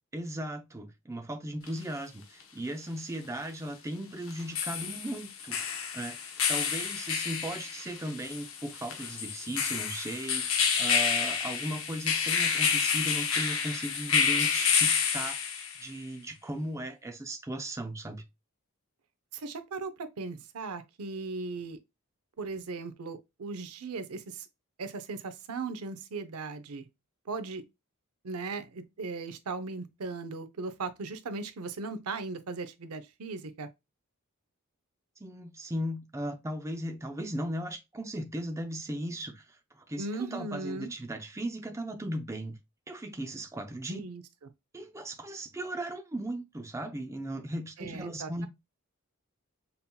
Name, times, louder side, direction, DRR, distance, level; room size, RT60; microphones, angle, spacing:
voice 1, 0.1-15.4 15.8-18.2 35.2-42.6 42.9-44.0 44.7-48.5, right 1 dB, 15° right, 0.5 m, -37 dB
sound 1, 1.7-1.8 4.3-15.9, left 6 dB, 65° left, 0.8 m, -29 dB
voice 2, 19.3-21.8 22.4-24.5 24.8-26.9 27.3-27.6 28.2-33.7 40.0-40.9 43.9-44.2 47.8-48.5, right 3 dB, 80° right, 0.6 m, -38 dB
5.3 x 2.8 x 2.2 m
head